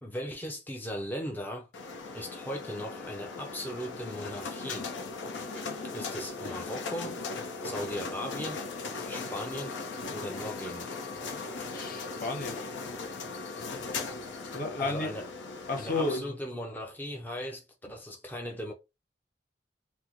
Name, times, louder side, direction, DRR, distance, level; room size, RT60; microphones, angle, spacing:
voice 1, 0.0-1.7 2.1-4.9 5.9-7.2 7.6-8.6 9.1-9.8 10.1-10.9 14.8-15.3 15.7-18.7, equal, 10° left, 0.4 m, -38 dB
sound 1, 1.7-16.2, left 4 dB, 90° left, 0.6 m, -38 dB
voice 2, 11.7-12.6 14.5-15.1 15.7-16.3, left 2 dB, 50° left, 0.7 m, -32 dB
3.0 x 2.0 x 3.6 m
head